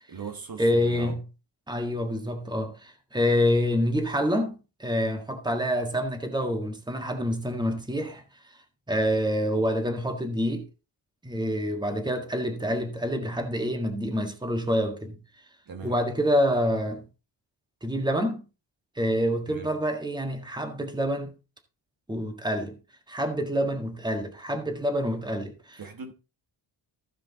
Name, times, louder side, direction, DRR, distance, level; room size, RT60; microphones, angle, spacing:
voice 1, 0.1-1.2 15.7-16.0 19.5-19.7 25.8-26.1, right 5 dB, 50° right, 1.4 m, -39 dB
voice 2, 0.6-1.2 1.7-8.2 8.9-10.6 11.2-15.2 15.8-17.0 17.8-18.4 18.9-21.3 22.1-22.8 23.1-25.8, equal, 10° right, 1.6 m, -27 dB
15.0 x 5.1 x 4.0 m
wide cardioid pair, 140°, 44 cm